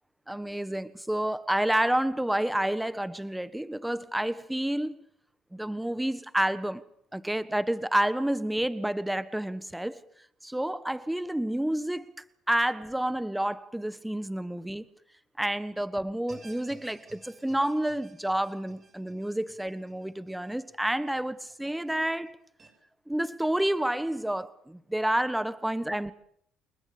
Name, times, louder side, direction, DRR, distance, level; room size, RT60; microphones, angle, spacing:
voice 1, 0.3-5.0 5.5-6.8 7.1-10.0 10.4-14.8 15.4-22.4 23.1-26.1, right 1 dB, 5° right, 1.3 m, -29 dB
sound 1, 16.3-21.5 21.9-22.0 22.6-22.7, right 3 dB, 30° right, 7.0 m, -55 dB
29.0 x 20.5 x 7.0 m
supercardioid pair, 90°, 0 cm